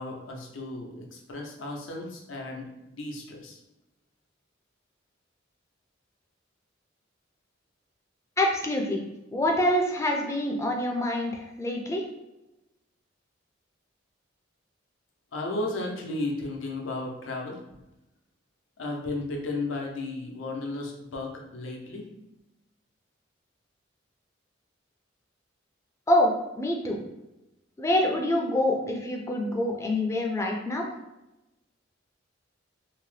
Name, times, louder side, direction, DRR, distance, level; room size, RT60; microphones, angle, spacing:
voice 1, 0.0-3.6 15.3-17.6 18.8-22.0, left 2 dB, 85° left, 0 dB, 0.6 m, -34 dB
voice 2, 8.4-9.0 9.3-12.0 26.1-27.0 27.8-30.9, left 1 dB, 15° left, 1 dB, 0.3 m, -26 dB
2.7 x 2.0 x 3.1 m, 0.94 s
head